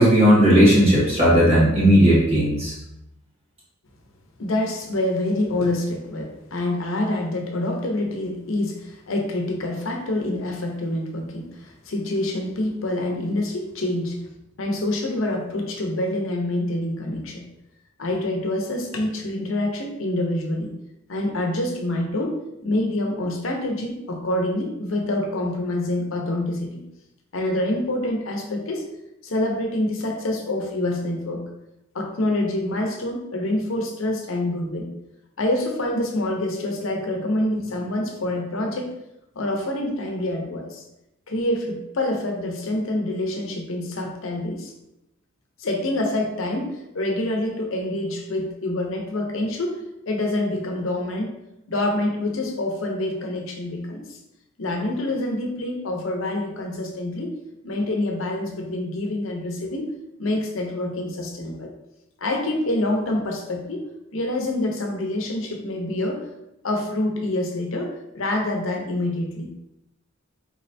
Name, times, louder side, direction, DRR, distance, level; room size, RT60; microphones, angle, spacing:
voice 1, 0.0-2.7, equal, 30° right, -7 dB, 1.5 m, -15 dB
voice 2, 4.4-14.2 14.6-17.4 18.0-20.7 21.1-26.7 27.3-28.8 29.2-31.4 31.9-34.9 35.4-38.9 39.4-40.8 41.3-44.7 45.6-49.8 50.1-51.3 51.7-54.0 54.6-57.4 57.6-59.9 60.2-61.7 62.2-63.8 64.1-66.2 66.6-69.5, left 1 dB, 70° left, 2 dB, 0.7 m, -26 dB
4.8 x 3.3 x 2.7 m, 0.87 s
head